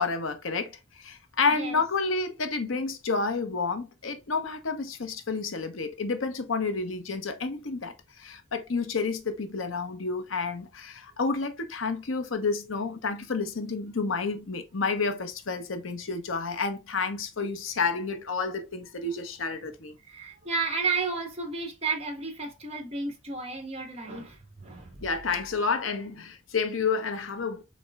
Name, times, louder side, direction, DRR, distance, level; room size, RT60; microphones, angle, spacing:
voice 1, 0.0-19.9 25.0-27.6, left 4 dB, 80° left, 0.8 m, -30 dB
voice 2, 1.5-1.8 20.0-25.0, right 4 dB, 30° right, 1.2 m, -32 dB
4.4 x 4.2 x 2.2 m
head